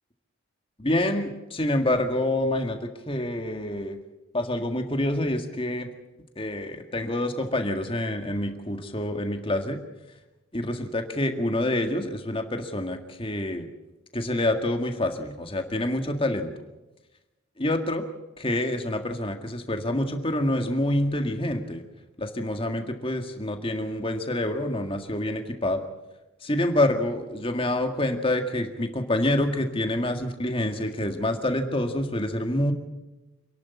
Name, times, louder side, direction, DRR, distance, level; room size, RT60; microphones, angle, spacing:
voice 1, 0.8-4.0 4.3-5.9 6.4-9.8 10.5-13.7 14.1-16.5 17.6-18.0 18.4-21.8 22.2-25.8 26.4-32.7, left 1 dB, 25° left, 5 dB, 1.9 m, -27 dB
27.5 x 11.5 x 8.4 m, 1.1 s
head